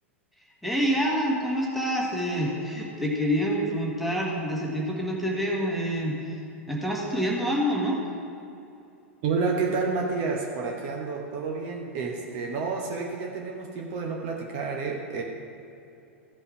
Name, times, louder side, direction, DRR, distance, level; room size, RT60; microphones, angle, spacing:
voice 1, 0.6-6.4 6.7-8.0, equal, ahead, -3 dB, 1.6 m, -27 dB
voice 2, 9.2-15.2, right 4 dB, 40° right, 1 dB, 1.0 m, -30 dB
14.5 x 5.5 x 4.7 m, 2.8 s
figure-of-eight pair, 95°, 7 cm